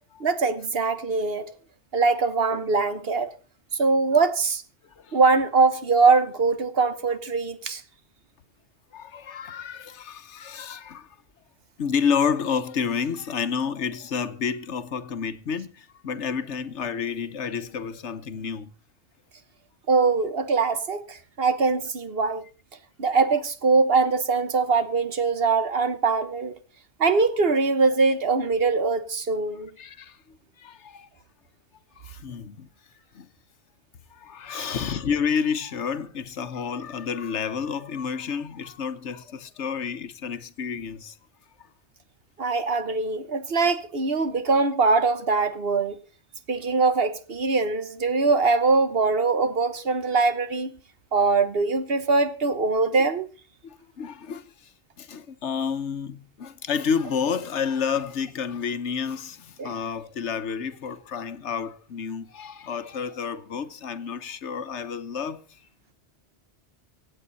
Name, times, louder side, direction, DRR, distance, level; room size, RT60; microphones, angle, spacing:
voice 1, 0.2-1.5 1.9-3.3 3.8-4.6 5.1-7.8 19.9-22.4 23.0-26.5 27.0-29.7 34.5-34.7 42.4-46.0 46.5-50.7 51.1-53.3 59.6-59.7, right 4 dB, 60° right, 1.4 m, -22 dB
voice 2, 4.8-5.2 8.9-11.2 11.8-18.7 29.8-30.2 30.6-31.1 32.0-32.7 33.1-33.3 34.1-41.2 53.6-54.7 55.0-65.6, left 6 dB, 85° left, 1.3 m, -30 dB
25.0 x 8.4 x 4.1 m
omnidirectional pair, 1.2 m